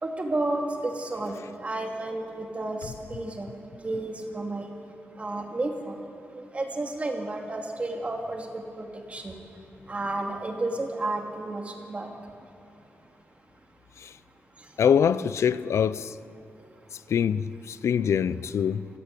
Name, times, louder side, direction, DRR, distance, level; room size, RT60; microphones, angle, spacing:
voice 1, 0.0-3.5 3.8-4.7 5.2-6.0 6.3-9.3 9.9-12.1, right 2 dB, 30° right, 2.7 m, -32 dB
voice 2, 14.8-16.1 17.1-18.9, left 7 dB, 85° left, 0.6 m, -24 dB
28.0 x 16.0 x 8.3 m
wide cardioid pair, 135°, 5 cm